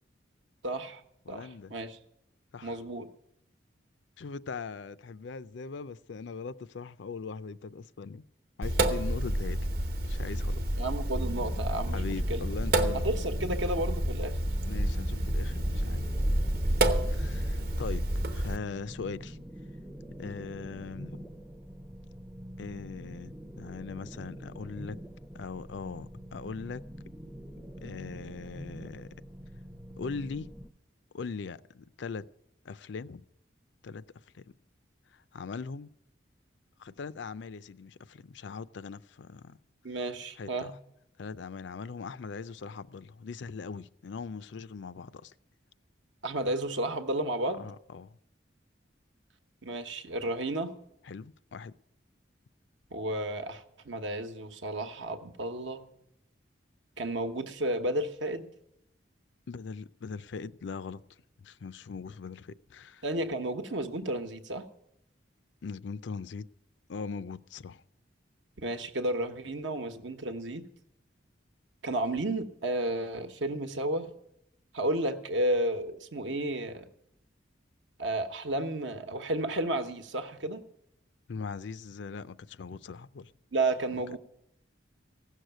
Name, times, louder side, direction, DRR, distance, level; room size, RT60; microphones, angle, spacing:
voice 1, 0.6-1.0 1.3-2.0 2.6-3.1 10.8-12.0 12.3-12.4 12.9-14.4 39.8-40.7 46.2-47.7 49.6-50.7 52.9-55.8 57.0-58.5 63.0-64.7 68.6-70.6 71.8-74.1 74.7-76.9 78.0-80.6 83.5-84.2, right 1 dB, 75° right, 1.1 m, -32 dB
voice 2, 1.3-1.8 2.5-2.8 4.2-8.2 8.6-9.6 10.1-10.7 11.9-13.3 14.6-16.0 17.1-19.4 20.2-21.3 22.6-25.0 25.3-26.8 27.8-29.1 30.0-30.5 31.1-32.3 32.6-33.2 33.8-34.0 34.3-34.4 35.3-35.9 36.8-39.6 40.4-40.7 41.2-45.3 47.6-48.1 51.0-51.7 59.5-61.0 61.4-63.0 65.6-66.5 66.9-67.8 81.3-83.3, left 5 dB, 70° left, 0.4 m, -40 dB
Sink (filling or washing), 8.6-18.6, right 1 dB, 50° right, 1.0 m, -29 dB
sound 1, 11.1-30.7, equal, 5° right, 0.5 m, -45 dB
15.5 x 6.5 x 9.0 m
head